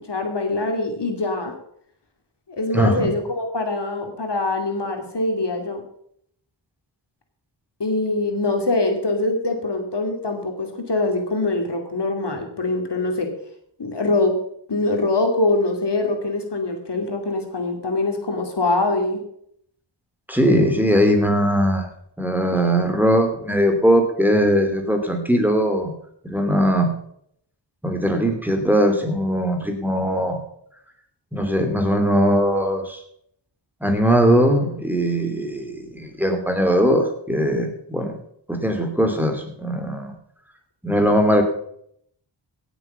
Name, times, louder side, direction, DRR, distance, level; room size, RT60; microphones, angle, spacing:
voice 1, 0.1-1.5 2.6-5.8 7.8-13.3 13.8-14.3 14.7-19.2, left 2 dB, 65° left, 4 dB, 2.6 m, -23 dB
voice 2, 2.7-3.1 20.3-21.9 22.2-25.9 26.2-26.9 27.8-30.4 31.3-33.0 33.8-38.2 38.5-40.1 40.8-41.4, equal, 5° right, 4 dB, 2.9 m, -20 dB
17.0 x 7.1 x 5.8 m, 0.68 s
wide cardioid pair, 60°, 45 cm